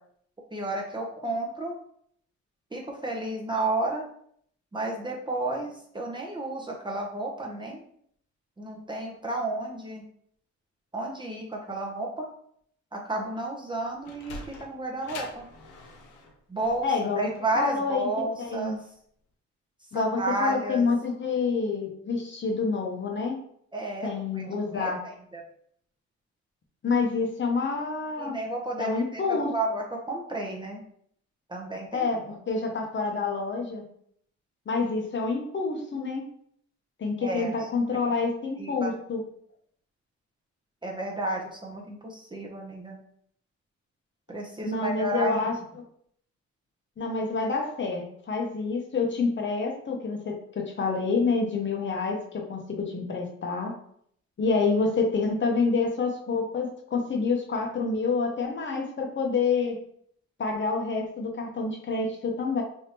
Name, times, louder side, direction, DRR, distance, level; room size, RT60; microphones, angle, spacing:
voice 1, 0.5-1.8 2.7-4.0 4.7-7.8 8.6-10.0 10.9-12.3 12.9-15.5 16.5-18.8 19.9-20.9 23.7-24.4 24.7-25.4 28.2-30.8 31.5-32.2 37.2-37.7 38.6-38.9 40.8-43.0 44.3-45.4, right 2 dB, 15° right, -1 dB, 0.7 m, -32 dB
Sliding door, 13.7-18.9, left 3 dB, 75° left, 0.8 m, -45 dB
voice 2, 16.8-17.3 17.5-18.1 18.4-18.8 19.9-23.4 24.0-25.0 26.8-28.4 28.8-29.5 31.9-33.8 34.7-36.2 37.0-39.2 44.6-45.5 47.0-53.7 54.4-59.8 60.4-62.6, left 4 dB, 40° left, 1 dB, 0.8 m, -27 dB
3.5 x 2.7 x 2.9 m, 0.66 s
cardioid pair, 90°, 30 cm